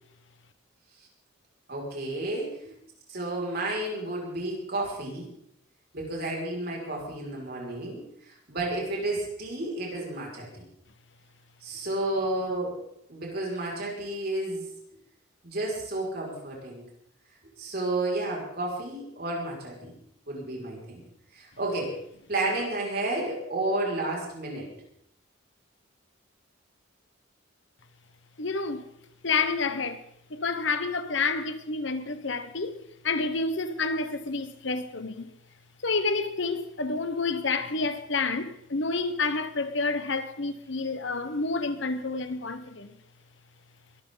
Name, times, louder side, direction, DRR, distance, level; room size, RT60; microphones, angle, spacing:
voice 1, 1.7-2.7 3.1-5.3 5.9-10.6 11.6-12.8 13.1-14.7 15.4-16.8 17.6-20.0 20.3-21.0 21.3-22.0 22.3-24.7, right 2 dB, 50° right, 5.8 m, -31 dB
voice 2, 28.4-28.9 29.2-30.0 30.3-35.3 35.8-43.0, left 4 dB, 65° left, 1.1 m, -29 dB
22.5 x 13.0 x 4.0 m
head